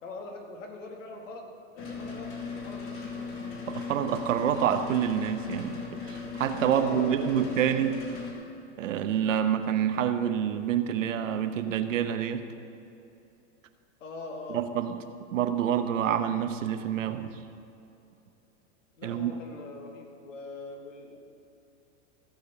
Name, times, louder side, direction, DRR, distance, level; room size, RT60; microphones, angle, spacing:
voice 1, 0.0-2.3 2.6-3.2 6.7-7.5 14.0-14.6 19.0-21.2, left 2 dB, 85° left, 2 dB, 2.2 m, -41 dB
sound 1, 1.8-8.3, left 4 dB, 45° left, 2.4 m, -38 dB
voice 2, 3.7-8.0 8.8-12.4 14.5-15.0 15.3-17.4 19.0-19.3, right 9 dB, 90° right, 9 dB, 1.0 m, -27 dB
15.0 x 5.1 x 6.7 m, 2.7 s
supercardioid pair, 145°, 37 cm